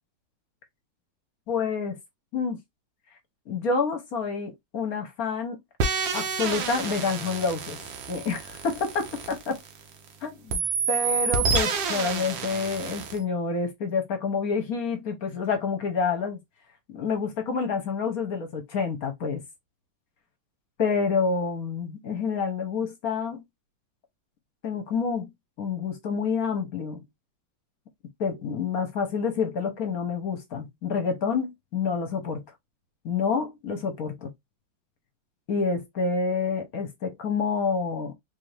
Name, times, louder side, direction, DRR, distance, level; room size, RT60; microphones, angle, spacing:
voice 1, 1.5-2.0 2.3-2.6 3.5-5.6 6.1-7.8 8.1-9.6 10.2-16.4 16.9-19.4 20.8-23.4 24.6-27.0 28.2-32.4 33.0-34.3 35.5-38.1, left 5 dB, 55° left, 1.3 m, -28 dB
sound 1, 5.8-10.1 10.5-13.2, right 5 dB, 75° right, 1.6 m, -29 dB
4.1 x 2.7 x 3.2 m
omnidirectional pair, 2.1 m